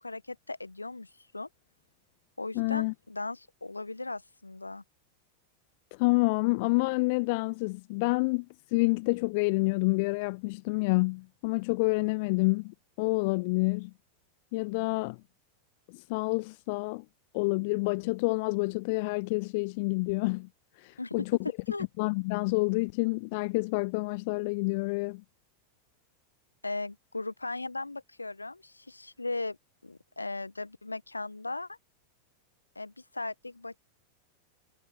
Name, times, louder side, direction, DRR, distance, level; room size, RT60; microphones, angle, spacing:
voice 1, 0.0-1.5 2.4-4.8 21.0-21.1 21.7-21.9 26.6-29.6 29.8-31.8 32.7-33.8, left 2 dB, 80° left, 1.1 m, -37 dB
voice 2, 2.5-2.9 6.0-8.5 8.7-13.9 14.5-15.2 15.9-17.0 17.3-20.5 20.8-21.2 22.0-25.2, left 27 dB, 45° left, 0.4 m, -28 dB
figure-of-eight pair, 90°, 0 cm